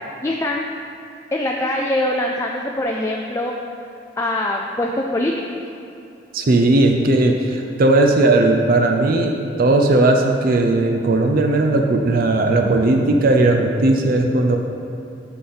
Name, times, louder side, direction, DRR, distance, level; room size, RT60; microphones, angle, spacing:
voice 1, 0.2-0.7 1.3-3.5 4.2-5.3, left 1 dB, 15° left, -1 dB, 0.4 m, -23 dB
voice 2, 6.3-9.3 9.6-14.6, right 2 dB, 50° right, 3 dB, 0.5 m, -16 dB
12.5 x 4.2 x 4.1 m, 2.8 s
head